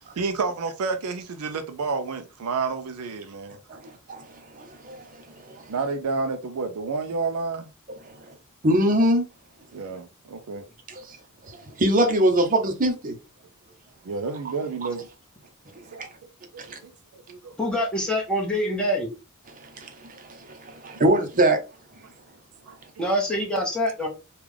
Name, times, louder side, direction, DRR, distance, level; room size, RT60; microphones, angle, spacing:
voice 1, 0.2-3.6 5.7-7.7 9.7-10.7 14.0-15.1 15.9-16.0 16.5-17.6 22.7-22.8, right 4 dB, 75° right, 0.4 m, -30 dB
voice 2, 8.6-9.2 11.8-13.1 19.8-19.9 20.8-21.6, right 1 dB, 40° right, 0.7 m, -20 dB
voice 3, 17.6-19.1 23.0-24.1, equal, 5° left, 1.2 m, -25 dB
3.5 x 2.4 x 3.3 m
head